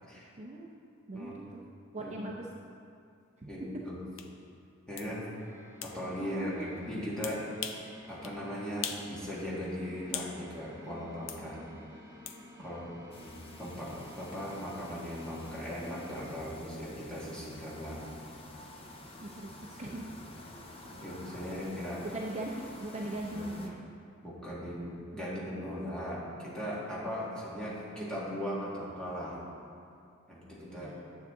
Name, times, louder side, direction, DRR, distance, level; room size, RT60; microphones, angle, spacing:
voice 1, 0.4-0.7 1.1-1.6 1.9-2.5 3.4-3.5 6.2-6.7 12.6-12.8 19.2-20.1 22.0-23.8 30.7-31.0, right 1 dB, 35° right, -1 dB, 0.5 m, -40 dB
voice 2, 3.5-3.9 4.9-5.3 5.8-7.5 8.1-11.7 12.6-12.9 13.2-18.0 19.9-20.0 21.0-22.0 23.3-23.5 24.2-29.4 30.3-30.9, equal, 5° left, -8 dB, 1.8 m, -38 dB
sound 1, 4.2-4.3 5.0-5.1 5.8-6.0 7.2-7.9 8.2-8.4 8.8-9.1 9.4-10.4 11.3-11.4 12.3-12.4, left 8 dB, 70° left, 0.6 m, -39 dB
sound 2, 5.4-16.3, equal, 10° right, 1.2 m, -52 dB
sound 3, 13.1-23.7, left 1 dB, 30° left, 0.8 m, -50 dB
9.4 x 7.3 x 3.7 m, 2.4 s
head